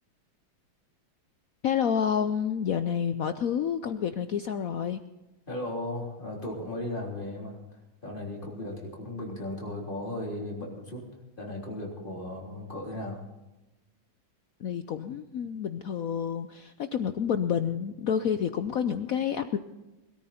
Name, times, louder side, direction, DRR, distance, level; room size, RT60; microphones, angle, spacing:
voice 1, 1.6-5.0 14.6-19.6, left 8 dB, 70° left, 9 dB, 0.8 m, -29 dB
voice 2, 5.5-7.6 8.0-11.1 11.4-13.2, left 1 dB, 25° left, -2 dB, 3.8 m, -36 dB
21.5 x 13.5 x 4.3 m, 1.0 s
omnidirectional pair, 2.2 m